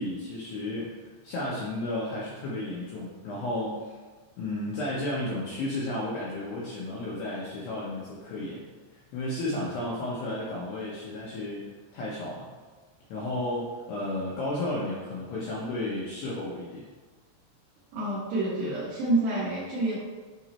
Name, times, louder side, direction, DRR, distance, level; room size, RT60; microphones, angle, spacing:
voice 1, 0.0-4.0 4.4-11.6 11.9-12.5 13.1-16.9, left 1 dB, 80° left, -6 dB, 2.4 m, -33 dB
voice 2, 17.9-20.0, right 2 dB, 75° right, -9 dB, 2.1 m, -28 dB
9.0 x 3.0 x 4.2 m, 1.3 s
omnidirectional pair, 6.0 m